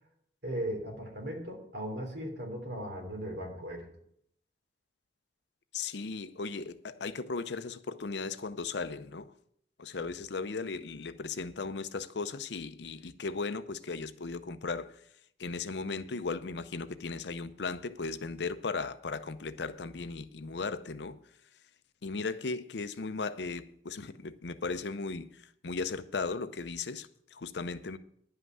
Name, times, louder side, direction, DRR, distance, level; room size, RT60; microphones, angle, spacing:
voice 1, 0.4-3.9, right 1 dB, 65° right, 3.4 m, -37 dB
voice 2, 5.7-9.3 9.8-15.0 15.4-21.2 22.0-28.0, left 4 dB, 70° left, 0.6 m, -37 dB
11.0 x 5.7 x 7.7 m
head